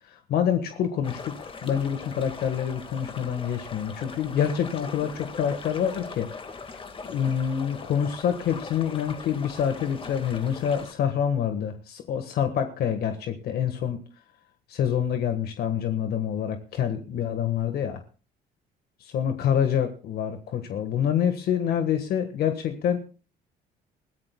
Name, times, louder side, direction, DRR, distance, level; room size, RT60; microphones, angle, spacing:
voice 1, 0.1-6.3 7.0-14.0 14.7-18.0 19.1-23.0, left 8 dB, 65° left, 7 dB, 1.5 m, -26 dB
sound 1, 1.0-10.9, left 4 dB, 30° left, 1.7 m, -40 dB
21.5 x 15.5 x 2.3 m, 0.37 s
cardioid pair, 110°, 17 cm